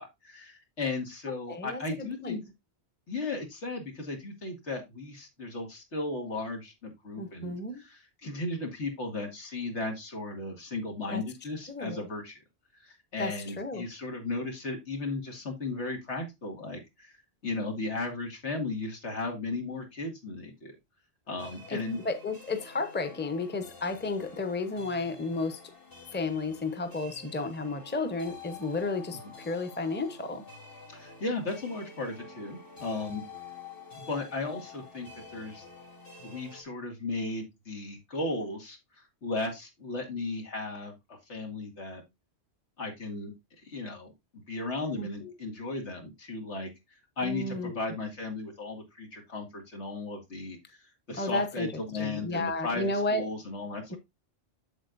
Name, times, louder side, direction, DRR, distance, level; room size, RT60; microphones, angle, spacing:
voice 1, 0.0-2.4 3.1-12.4 12.8-17.1 17.4-20.7 21.3-22.0 30.9-33.2 34.1-35.6 36.2-42.0 42.8-43.3 43.6-44.1 44.5-46.7 47.2-50.8 51.1-54.0, left 3 dB, 85° left, 2.4 m, -35 dB
voice 2, 1.5-1.8 2.2-2.4 7.2-7.8 11.1-11.2 11.7-12.0 13.2-13.8 21.7-21.8 22.0-25.6 26.1-30.4 45.0-45.3 47.2-47.8 51.2-51.7 52.0-53.2 53.9-54.0, left 3 dB, 10° left, 0.8 m, -32 dB
sound 1, 21.4-36.6, left 4 dB, 55° left, 2.8 m, -49 dB
7.9 x 7.5 x 2.5 m
omnidirectional pair, 1.1 m